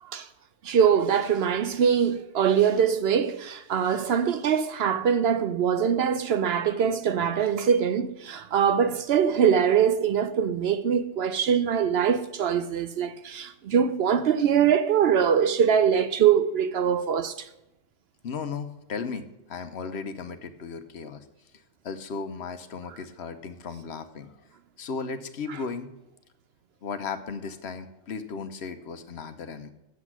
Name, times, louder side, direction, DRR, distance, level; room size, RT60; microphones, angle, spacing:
voice 1, 0.6-17.5, right 8 dB, 65° right, 0.8 m, -23 dB
voice 2, 18.2-21.3 21.8-24.3 24.8-25.9 26.8-29.7, left 5 dB, 65° left, 1.0 m, -35 dB
8.0 x 7.2 x 6.0 m
omnidirectional pair, 1.2 m